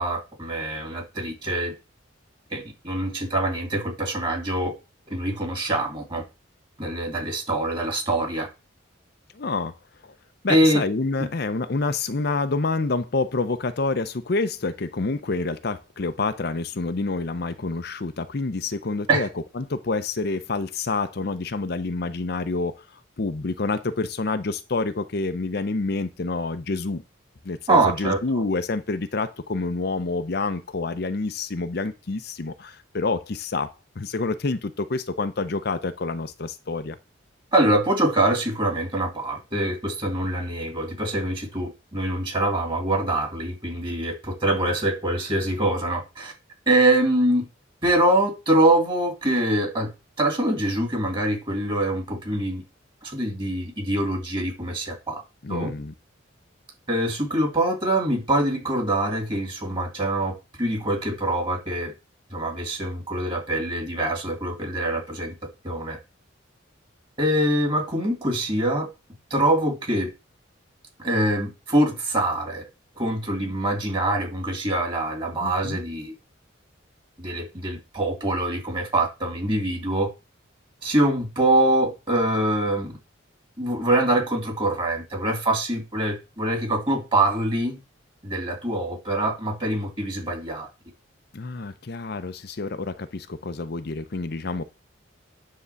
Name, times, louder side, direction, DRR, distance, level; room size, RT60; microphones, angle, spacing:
voice 1, 0.0-1.7 2.5-4.7 5.1-6.2 6.8-8.5 10.5-10.8 19.1-19.3 27.7-28.2 37.5-46.3 46.7-47.5 47.8-49.9 50.2-52.6 53.0-55.2 55.5-55.7 56.9-60.3 60.6-61.9 62.3-65.3 65.6-66.0 67.2-68.9 69.3-70.1 71.0-72.6 72.9-76.1 77.2-80.1 80.8-83.0 83.6-87.8 88.2-90.7, right 1 dB, 25° right, 2.6 m, -24 dB
voice 2, 9.3-9.8 10.0-10.1 10.4-19.3 19.5-27.0 27.4-37.0 55.4-55.9 75.4-75.8 91.3-94.6, left 3 dB, 50° left, 0.6 m, -28 dB
9.7 x 3.8 x 7.0 m
head